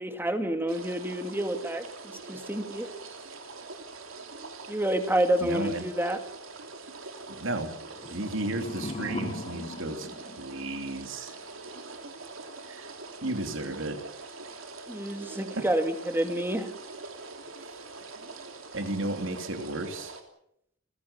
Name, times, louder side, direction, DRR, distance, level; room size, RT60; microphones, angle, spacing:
voice 1, 0.0-1.8 2.3-2.9 4.7-6.2 14.9-16.7, right 1 dB, 10° right, 7 dB, 2.2 m, -28 dB
sound 1, 0.7-20.2, right 3 dB, 90° right, 3.3 m, -44 dB
voice 2, 5.4-5.8 7.3-7.8 8.1-10.1 10.4-11.3 12.6-12.9 13.2-14.0 15.5-15.6 17.6-17.7 18.7-20.1, right 2 dB, 70° right, 6 dB, 3.2 m, -33 dB
sound 2, 7.9-11.0, left 1 dB, 30° left, 1.1 m, -39 dB
29.5 x 15.5 x 7.0 m, 0.75 s
head